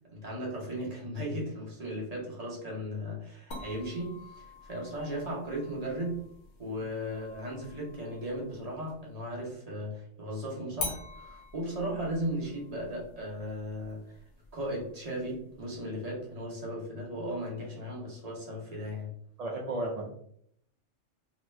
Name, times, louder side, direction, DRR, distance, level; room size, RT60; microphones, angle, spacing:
voice 1, 0.1-6.3 6.6-14.2 14.5-19.1, equal, 35° right, -3 dB, 0.9 m, -36 dB
sound 1, 3.5-9.1 10.8-15.8, left 3 dB, 90° left, 1.1 m, -45 dB
voice 2, 19.4-20.2, right 2 dB, 80° right, -1 dB, 0.3 m, -34 dB
2.9 x 2.2 x 3.2 m, 0.69 s
omnidirectional pair, 1.2 m